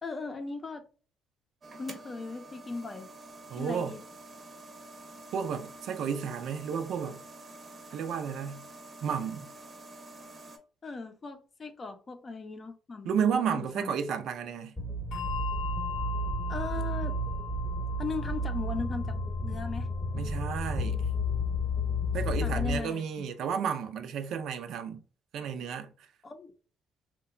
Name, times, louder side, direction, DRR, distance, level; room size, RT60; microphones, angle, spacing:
voice 1, 0.0-0.9 1.7-3.1 3.6-4.0 10.8-13.9 16.5-17.2 18.0-19.9 22.4-23.1 26.2-26.5, left 4 dB, 35° left, 0.5 m, -38 dB
sound 1, 1.6-10.6, right 2 dB, 35° right, 0.7 m, -48 dB
voice 2, 3.5-4.0 5.3-7.2 7.9-8.6 9.0-9.5 13.0-14.7 20.1-21.1 22.1-25.0 25.3-26.1, right 7 dB, 70° right, 0.4 m, -32 dB
sound 2, 14.8-22.8, left 1 dB, 5° left, 0.9 m, -32 dB
Bell, 15.1-22.0, left 9 dB, 75° left, 0.7 m, -41 dB
2.8 x 2.2 x 2.4 m
cardioid pair, 85°, 0 cm